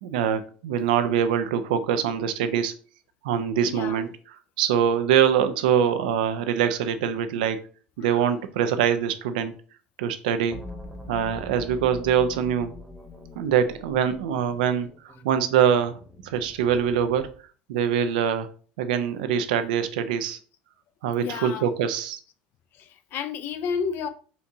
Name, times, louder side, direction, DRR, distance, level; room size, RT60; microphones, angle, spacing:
voice 1, 0.0-2.7 3.2-7.6 8.0-9.5 10.0-10.6 11.1-12.7 13.4-14.9 15.2-16.0 16.2-17.3 17.7-18.5 18.8-20.4 21.0-22.2, right 8 dB, 85° right, 0.6 m, -24 dB
voice 2, 3.7-4.0 8.0-8.3 21.2-21.7 22.7-24.1, left 6 dB, 50° left, 0.4 m, -31 dB
sound 1, 10.5-17.4, left 1 dB, ahead, 1.0 m, -43 dB
4.3 x 2.7 x 3.5 m
supercardioid pair, 100°, 4 cm